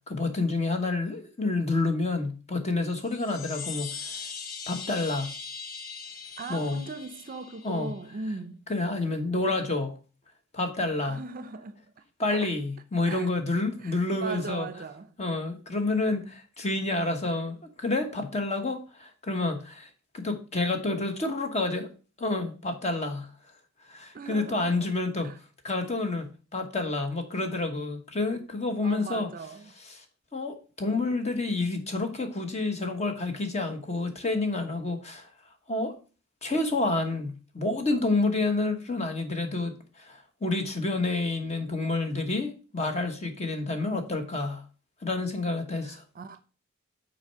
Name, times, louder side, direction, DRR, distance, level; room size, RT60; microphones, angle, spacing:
voice 1, 0.1-4.2 4.7-5.3 6.5-6.8 7.6-7.9 8.7-9.9 10.5-11.2 12.2-14.7 15.2-21.9 22.2-23.3 23.8-25.3 25.6-29.3 29.9-30.0 30.3-35.3 35.7-36.0 36.4-44.6 45.0-46.0, left 2 dB, 35° left, 1.2 m, -29 dB
sound 1, 3.0-8.0, left 5 dB, 75° left, 1.1 m, -40 dB
voice 2, 6.4-8.7 11.0-12.5 13.0-13.3 13.8-15.1 24.1-24.9 25.2-25.4 28.8-29.7 43.7-44.0 45.8-46.4, right 3 dB, 45° right, 0.5 m, -39 dB
6.2 x 4.4 x 5.5 m
head